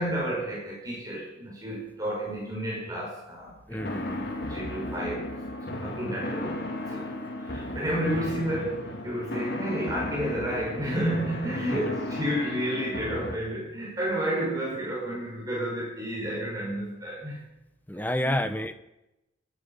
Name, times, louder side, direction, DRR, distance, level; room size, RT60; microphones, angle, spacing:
voice 1, 0.0-3.8 4.1-4.2 4.5-5.3 5.7-7.1 7.5-17.5 18.2-18.3, equal, 20° right, -3 dB, 5.5 m, -31 dB
voice 2, 3.7-4.3 11.7-11.9 17.9-18.7, equal, 10° left, 10 dB, 0.9 m, -30 dB
sound 1, 3.8-13.4, left 1 dB, 60° left, 2.3 m, -35 dB
24.5 x 10.5 x 5.7 m, 0.94 s
head